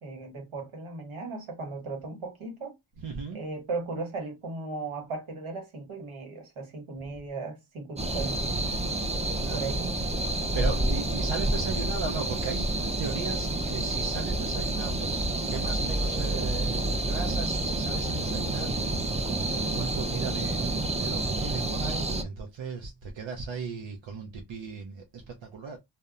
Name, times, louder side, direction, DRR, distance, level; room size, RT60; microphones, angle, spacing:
voice 1, 0.0-2.7 3.3-8.7 9.5-9.9 10.6-10.9, right 3 dB, 85° right, 1.1 m, -37 dB
voice 2, 3.0-3.4 9.4-9.8 10.2-25.8, right 5 dB, 70° right, 0.6 m, -37 dB
sound 1, 8.0-22.2, right 2 dB, 15° right, 0.4 m, -29 dB
2.7 x 2.1 x 2.4 m
wide cardioid pair, 60°, 47 cm